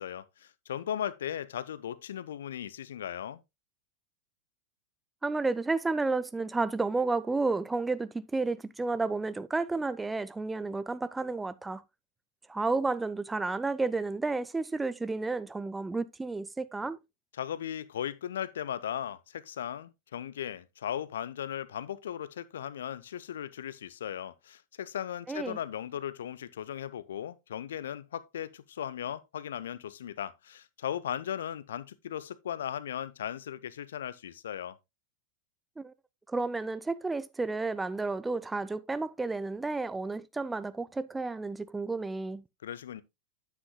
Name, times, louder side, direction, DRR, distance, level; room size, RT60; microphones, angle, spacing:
voice 1, 0.0-3.4 17.4-34.8 42.6-43.0, left 10 dB, 60° left, 0.6 m, -37 dB
voice 2, 5.2-11.8 12.5-17.0 25.3-25.6 35.8-35.9 36.3-42.4, right 3 dB, 10° right, 0.4 m, -31 dB
9.6 x 8.3 x 2.2 m
figure-of-eight pair, 90°, 0 cm